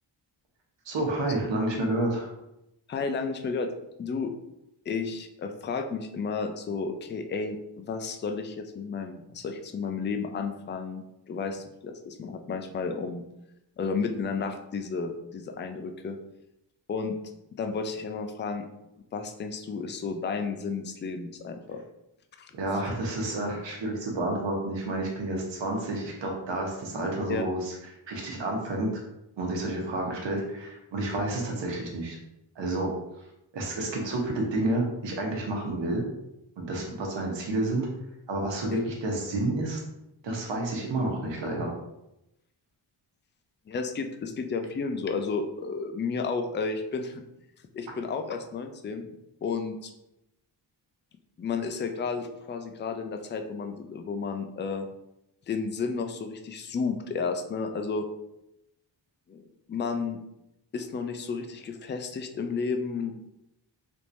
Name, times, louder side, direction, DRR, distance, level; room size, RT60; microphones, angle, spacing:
voice 1, 0.8-2.3 22.5-27.7 28.1-29.0 29.4-32.2 32.6-32.9 33.5-36.0 36.6-37.9 38.3-39.8 40.2-41.7, right 2 dB, 70° right, 0 dB, 1.1 m, -30 dB
voice 2, 2.9-3.7 4.0-4.3 4.9-13.2 13.8-16.2 16.9-17.2 17.5-18.7 19.1-21.8 22.4-22.5 27.3-27.4 38.7-38.8 43.7-47.2 47.7-49.1 49.4-49.9 51.4-54.9 55.5-58.0 59.3-60.2 60.7-63.2, left 5 dB, 25° left, 6 dB, 0.3 m, -32 dB
3.5 x 2.9 x 2.6 m, 0.87 s
cardioid pair, 90°, 46 cm